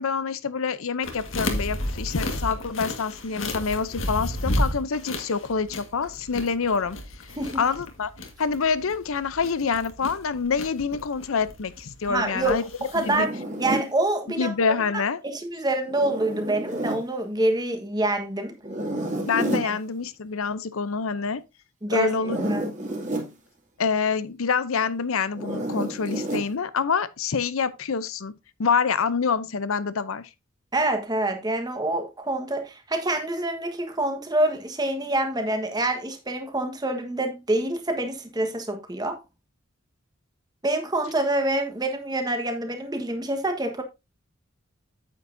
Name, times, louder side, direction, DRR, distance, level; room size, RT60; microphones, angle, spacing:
voice 1, 0.0-7.0 7.6-8.1 8.4-12.6 13.0-13.3 14.4-15.2 19.3-21.4 21.9-22.4 23.8-28.3 28.6-30.2, left 5 dB, 85° left, 0.7 m, -26 dB
sound 1, 1.0-13.2, left 1 dB, 70° left, 1.7 m, -32 dB
voice 2, 12.1-12.6 12.9-14.5 15.2-18.6 19.6-19.8 21.8-22.2 22.5-22.7 30.7-39.2 40.6-43.8, right 1 dB, 20° right, 1.4 m, -26 dB
Zipper (clothing), 13.0-13.9 15.9-17.0 18.6-19.7 22.1-23.3 25.3-26.5, right 1 dB, 35° right, 2.4 m, -30 dB
9.2 x 8.2 x 2.7 m
head